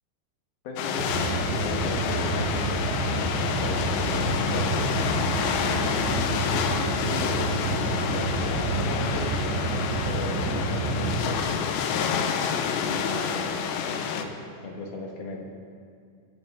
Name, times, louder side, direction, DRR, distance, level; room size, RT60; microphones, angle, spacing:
voice 1, 0.6-4.9 5.7-10.5 11.0-13.5 13.9-14.4 14.6-15.4, left 3 dB, 70° left, 0 dB, 3.0 m, -37 dB
sound 1, 0.8-14.3, left 7 dB, 90° left, 3.0 m, -28 dB
sound 2, 1.0-11.4, right 3 dB, 85° right, 3.5 m, -29 dB
23.0 x 9.5 x 3.6 m, 2.2 s
omnidirectional pair, 4.9 m